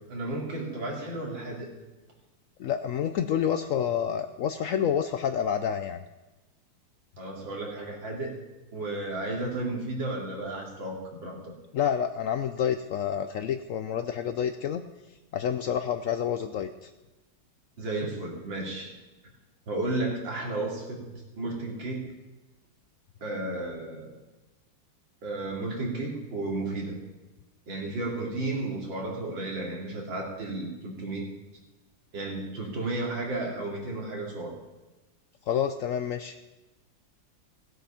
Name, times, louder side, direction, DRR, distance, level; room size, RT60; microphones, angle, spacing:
voice 1, 0.1-1.7 7.2-8.4 8.7-11.5 17.8-18.9 19.7-22.0 23.2-24.2 25.2-27.0 27.7-31.3 32.1-34.5, right 2 dB, 80° right, -1 dB, 3.3 m, -33 dB
voice 2, 2.6-6.0 11.7-14.8 15.3-16.9 35.5-36.4, left 8 dB, 85° left, 8 dB, 0.7 m, -28 dB
17.0 x 7.9 x 5.7 m, 1.1 s
omnidirectional pair, 2.0 m